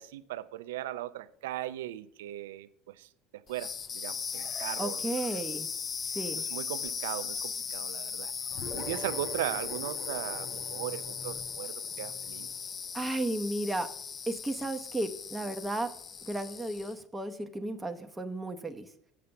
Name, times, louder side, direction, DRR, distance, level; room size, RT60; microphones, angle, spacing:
voice 1, 0.0-3.1 3.5-5.0 6.4-8.3 8.7-12.5, right 14 dB, 85° right, 0.5 m, -38 dB
sound 1, 3.5-17.0, left 6 dB, 35° left, 0.5 m, -38 dB
voice 2, 4.8-5.7 6.1-6.4 12.9-13.9 14.3-16.0 16.2-18.9, right 1 dB, 10° right, 0.8 m, -34 dB
sound 2, 8.5-13.3, left 2 dB, 60° left, 4.0 m, -45 dB
7.5 x 6.8 x 6.9 m
supercardioid pair, 95°, 0 cm